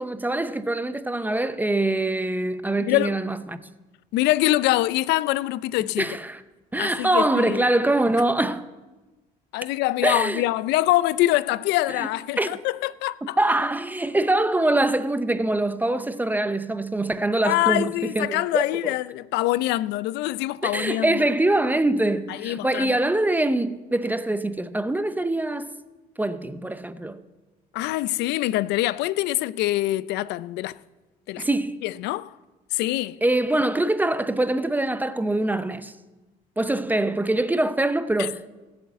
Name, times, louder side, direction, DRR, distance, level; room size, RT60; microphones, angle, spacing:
voice 1, 0.0-3.6 6.0-6.4 6.7-8.6 10.0-10.4 12.0-12.1 12.4-12.5 13.4-18.9 20.6-25.7 26.2-27.2 31.4-31.8 33.2-35.9 36.6-38.5, right 2 dB, 10° right, 0.6 m, -24 dB
voice 2, 2.8-3.2 4.1-6.2 6.8-7.7 9.5-13.4 17.4-21.3 22.3-23.0 27.7-30.8 31.3-31.5 31.8-32.3 32.7-33.2 38.2-38.3, left 16 dB, 90° left, 0.5 m, -24 dB
17.0 x 7.9 x 8.2 m
cardioid pair, 110°, 17 cm